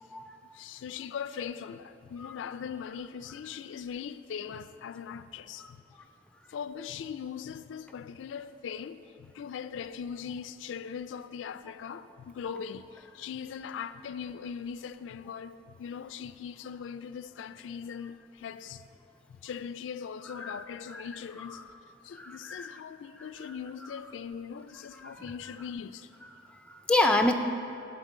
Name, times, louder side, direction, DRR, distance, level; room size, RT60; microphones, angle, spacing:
voice 1, 0.5-5.8 6.5-18.9 19.3-21.6 22.0-26.1, left 7 dB, 85° left, 0.3 m, -40 dB
voice 2, 20.3-20.6 20.9-21.0 22.1-22.7 23.2-23.5 25.0-25.2 26.5-27.3, left 2 dB, 5° left, 0.3 m, -28 dB
10.5 x 4.4 x 7.5 m
head